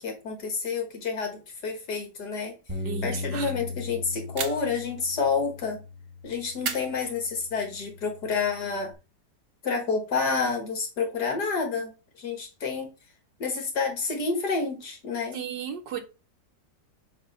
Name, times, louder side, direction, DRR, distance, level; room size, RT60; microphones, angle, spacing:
voice 1, 0.0-2.5 3.0-5.8 6.2-8.9 9.6-11.9 12.2-12.9 13.4-15.4, left 4 dB, 65° left, 1.9 m, -29 dB
Bass guitar, 2.7-8.9, left 2 dB, 25° right, 1.1 m, -39 dB
voice 2, 2.8-3.5 15.3-16.0, right 6 dB, 80° right, 1.5 m, -34 dB
sound 1, 4.4-4.9 6.6-7.6, right 6 dB, 50° right, 0.7 m, -35 dB
7.8 x 2.8 x 5.4 m
omnidirectional pair, 1.9 m